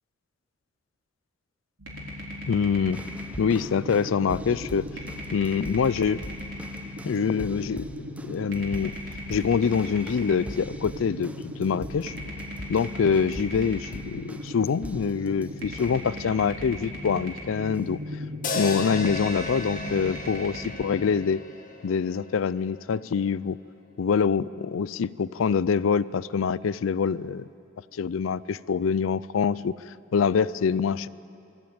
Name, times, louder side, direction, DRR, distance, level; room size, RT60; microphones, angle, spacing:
sound 1, 1.8-21.0, left 1 dB, 75° right, 4.2 m, -37 dB
voice 1, 2.5-3.0 3.4-4.9 5.3-6.3 7.0-9.0 9.3-12.1 12.7-18.0 18.6-21.4 21.8-23.6 24.0-27.5 27.9-31.1, left 6 dB, 80° left, 19 dB, 0.4 m, -25 dB
sound 2, 2.9-16.2 16.6-17.0 17.7-17.8, right 1 dB, 5° right, 0.6 m, -43 dB
sound 3, 18.4-22.7, left 3 dB, 40° left, 1.7 m, -35 dB
23.0 x 14.5 x 8.8 m, 2.7 s
head